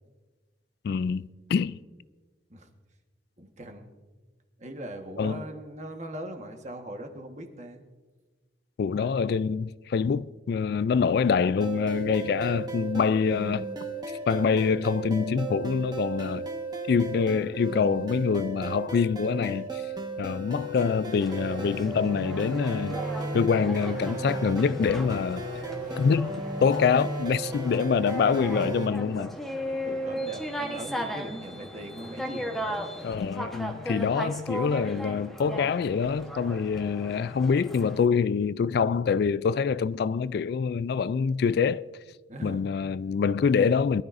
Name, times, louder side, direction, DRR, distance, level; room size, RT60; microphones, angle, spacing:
voice 1, 0.8-1.2 1.5-1.8 5.2-5.4 8.8-13.7 14.3-16.5 16.9-19.8 20.2-23.0 23.3-25.4 26.0-29.4 33.0-41.9 42.4-44.0, left 6 dB, 60° left, 0.3 m, -25 dB
voice 2, 3.4-3.9 4.6-7.8 8.9-9.2 29.6-32.7 42.3-42.6, right 1 dB, 40° right, 1.4 m, -40 dB
sound 1, 11.6-28.9, right 2 dB, 25° right, 1.3 m, -35 dB
sound 2, 21.2-38.0, equal, ahead, 1.1 m, -37 dB
22.5 x 12.5 x 2.6 m
head